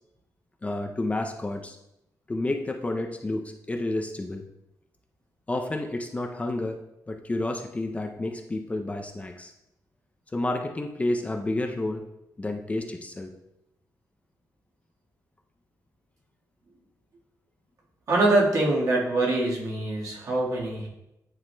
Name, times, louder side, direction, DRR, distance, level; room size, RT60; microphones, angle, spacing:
voice 1, 0.6-1.8 2.3-4.4 5.5-6.8 7.1-9.5 10.3-12.0 12.4-13.3, left 2 dB, 20° left, 3 dB, 0.4 m, -30 dB
voice 2, 18.1-20.9, right 2 dB, 55° right, -3 dB, 1.5 m, -24 dB
9.6 x 4.5 x 2.2 m, 0.89 s
wide cardioid pair, 145°, 7 cm